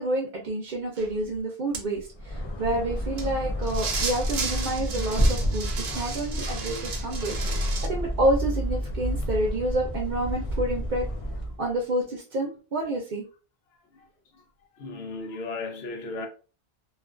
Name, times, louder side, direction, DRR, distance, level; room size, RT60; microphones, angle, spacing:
voice 1, 0.0-11.1 11.6-13.2, right 1 dB, 55° right, 0.6 m, -29 dB
sound 1, 1.0-1.1 1.7-1.8 3.2-3.3 3.6-7.9, right 4 dB, 85° right, 0.8 m, -33 dB
sound 2, 2.1-11.6, equal, 50° left, 0.4 m, -29 dB
voice 2, 14.7-16.3, left 3 dB, 75° left, 0.9 m, -36 dB
2.4 x 2.3 x 2.4 m
omnidirectional pair, 1.0 m